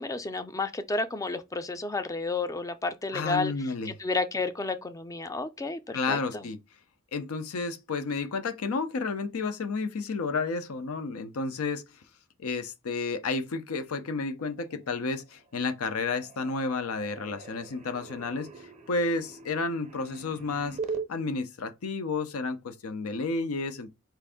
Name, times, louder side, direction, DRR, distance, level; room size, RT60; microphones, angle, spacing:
voice 1, 0.0-6.4, left 3 dB, 15° left, 0.4 m, -31 dB
voice 2, 3.1-4.0 5.9-6.6 7.1-11.8 12.4-20.8 21.1-23.9, left 3 dB, 90° left, 0.5 m, -31 dB
sound 1, 15.2-15.6 15.9-21.0, right 4 dB, 30° right, 0.6 m, -41 dB
4.5 x 2.5 x 3.4 m
head